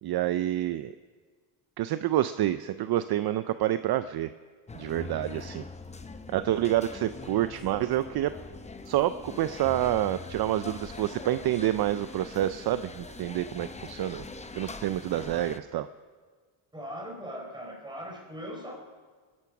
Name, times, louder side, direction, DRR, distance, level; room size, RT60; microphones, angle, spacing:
voice 1, 0.0-0.9 1.8-4.3 4.7-5.6 6.3-8.3 8.9-14.3 14.5-15.9, right 13 dB, 50° right, 12 dB, 0.5 m, -28 dB
sound 1, 4.7-15.6, left 3 dB, 15° left, 0.7 m, -43 dB
voice 2, 16.7-18.7, equal, 10° right, 0 dB, 3.9 m, -39 dB
21.5 x 11.0 x 6.0 m, 1.5 s
cardioid pair, 130°, 48 cm